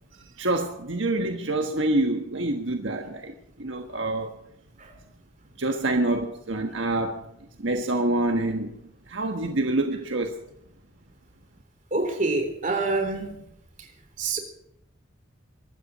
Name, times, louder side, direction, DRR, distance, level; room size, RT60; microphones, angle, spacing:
voice 1, 0.4-3.3 3.6-4.3 5.6-7.2 7.6-8.7 9.1-10.4, right 2 dB, 70° right, 1.4 m, -26 dB
voice 2, 11.9-13.5 14.2-14.4, right 3 dB, 40° right, 3.7 m, -26 dB
23.5 x 13.0 x 4.2 m
head